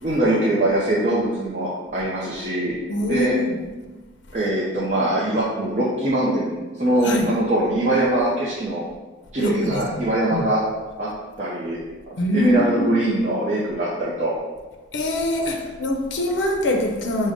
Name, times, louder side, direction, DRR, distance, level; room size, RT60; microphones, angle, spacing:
voice 1, 0.0-2.7 3.1-3.3 4.3-8.8 9.3-10.6 11.0-11.1 11.4-11.8 12.3-14.3 15.4-15.5, right 1 dB, 40° right, -7 dB, 0.6 m, -22 dB
voice 2, 2.9-3.6 7.0-7.4 9.4-10.5 12.2-12.9 14.9-17.3, left 1 dB, 75° left, 3 dB, 0.5 m, -24 dB
5.0 x 2.1 x 3.5 m, 1.2 s
head